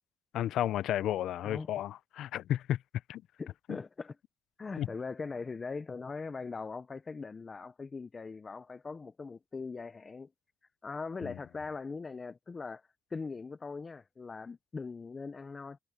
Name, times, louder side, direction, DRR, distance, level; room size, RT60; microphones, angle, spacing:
voice 1, 0.3-2.8 3.1-3.2 3.7-3.8 4.8-4.9 11.2-11.3, left 12 dB, 80° left, 0.4 m, -32 dB
voice 2, 3.4-4.2 4.6-10.3 10.8-12.8 13.1-15.8, left 4 dB, 30° left, 0.7 m, -40 dB
cardioid pair, 90°, 0 cm